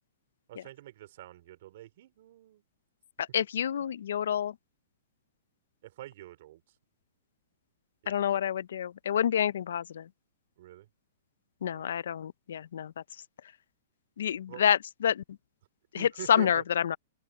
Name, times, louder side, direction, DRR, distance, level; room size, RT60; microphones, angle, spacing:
voice 1, 0.5-2.6 5.8-6.6 8.0-8.5 10.6-10.9 11.7-11.9 14.5-14.6 15.9-16.6, right 14 dB, 55° right, 3.8 m, -46 dB
voice 2, 3.3-4.5 8.1-10.0 11.6-12.9 14.2-15.2 15.9-17.0, left 9 dB, 80° left, 0.5 m, -28 dB
open air
hypercardioid pair, 150°, 0 cm